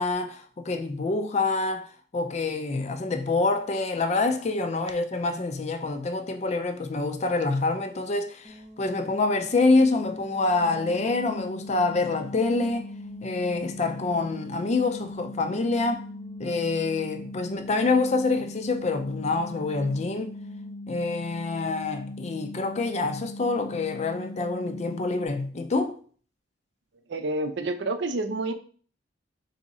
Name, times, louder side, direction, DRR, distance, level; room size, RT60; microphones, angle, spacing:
voice 1, 0.0-12.9 13.2-16.1 16.4-20.3 20.9-26.0, left 3 dB, 35° left, 0.4 m, -26 dB
sound 1, 8.4-20.8, equal, 30° right, 1.1 m, -50 dB
sound 2, 10.6-25.3, left 1 dB, 85° left, 1.1 m, -40 dB
voice 2, 27.1-28.5, right 2 dB, 65° right, 0.5 m, -28 dB
3.6 x 2.8 x 4.1 m
head